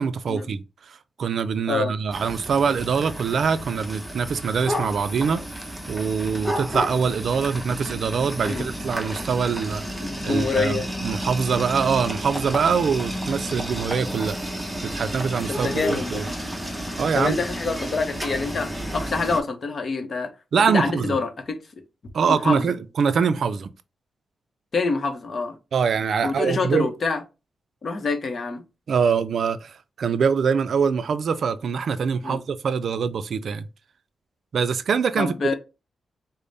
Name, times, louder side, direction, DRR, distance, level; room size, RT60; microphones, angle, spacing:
voice 1, 0.0-5.4 5.9-10.0 10.2-14.4 14.8-16.2 17.0-17.4 20.5-21.2 22.1-23.7 25.7-26.9 28.9-33.7 34.5-35.5, right 6 dB, 65° right, 0.3 m, -24 dB
sound 1, 2.1-19.4, equal, 5° right, 0.7 m, -32 dB
voice 2, 10.0-10.9 15.5-16.2 17.1-20.3 20.7-21.6 22.3-22.7 24.7-25.6 26.2-27.2 27.8-28.6 32.2-32.4 35.2-35.5, left 4 dB, 45° left, 0.7 m, -26 dB
5.0 x 2.0 x 2.6 m
wide cardioid pair, 115°, 0 cm